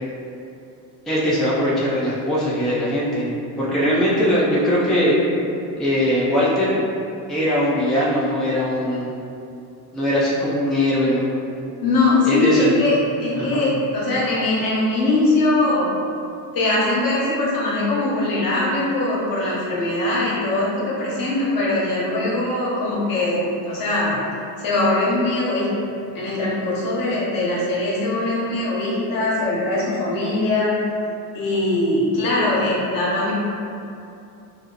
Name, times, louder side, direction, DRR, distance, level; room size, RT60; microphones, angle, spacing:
voice 1, 1.1-3.3 3.6-5.1 5.8-6.8 7.3-9.1 9.9-11.3 12.2-12.7 13.4-13.6, equal, ahead, -8 dB, 0.5 m, -20 dB
voice 2, 11.8-16.0 16.5-24.2 24.6-25.8 26.1-30.8 31.3-33.3, left 2 dB, 50° left, -6 dB, 1.2 m, -21 dB
2.8 x 2.0 x 3.9 m, 2.7 s
supercardioid pair, 85°, 44 cm